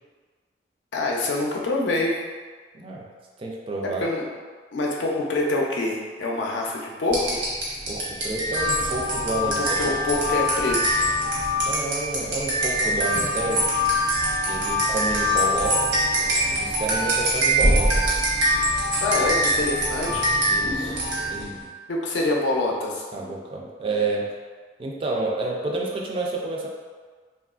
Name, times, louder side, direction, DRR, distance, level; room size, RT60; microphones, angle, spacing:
voice 1, 0.9-2.1 4.0-4.3 4.7-7.4 9.4-10.8 19.0-20.2 21.9-23.0, left 2 dB, 75° left, -2 dB, 0.5 m, -25 dB
voice 2, 2.7-3.1 3.4-4.0 7.9-9.9 11.6-13.7 14.5-16.1 16.5-18.2 20.5-21.0 21.3-21.7 23.1-24.3 24.8-26.7, right 2 dB, 30° right, -1 dB, 0.3 m, -29 dB
sound 1, 7.1-21.5, equal, 80° right, 0.9 m, -23 dB
2.9 x 2.3 x 2.4 m, 1.5 s
head